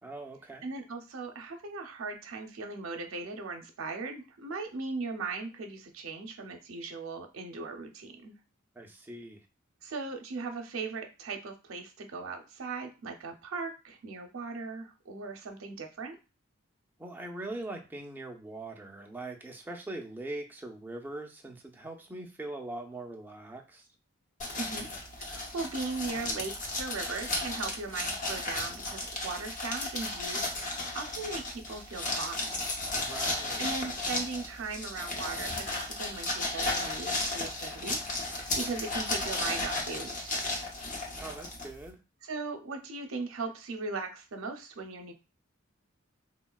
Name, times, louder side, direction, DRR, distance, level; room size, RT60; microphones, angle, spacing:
voice 1, 0.0-0.7 8.8-9.4 17.0-23.9 32.9-33.6 41.2-42.0, right 2 dB, 10° right, 1 dB, 0.4 m, -41 dB
voice 2, 0.6-8.3 9.8-16.2 24.5-24.9 25.2-32.5 33.6-38.0 38.6-40.6 42.2-45.1, right 4 dB, 80° right, 4 dB, 0.6 m, -38 dB
sound 1, 24.4-41.9, left 2 dB, 40° left, 0.7 m, -34 dB
3.6 x 2.1 x 2.3 m, 0.30 s
head